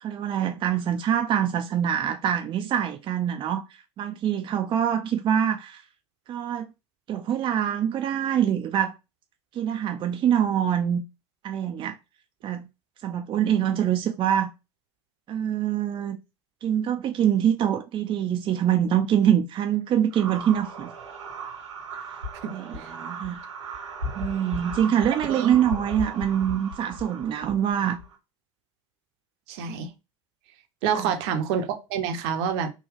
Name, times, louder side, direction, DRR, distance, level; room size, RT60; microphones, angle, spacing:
voice 1, 0.0-5.8 6.3-6.7 7.1-9.0 9.5-11.0 11.4-12.0 12.4-12.7 13.0-14.5 15.3-16.2 16.6-20.9 22.4-23.4 24.1-28.0 30.9-31.1, right 9 dB, 35° right, 0.4 m, -25 dB
sound 1, 20.1-28.2, right 1 dB, 90° right, 1.2 m, -37 dB
voice 2, 29.5-29.9 30.8-32.7, right 7 dB, 60° right, 0.7 m, -27 dB
3.6 x 2.2 x 3.5 m
hypercardioid pair, 80°, 15 cm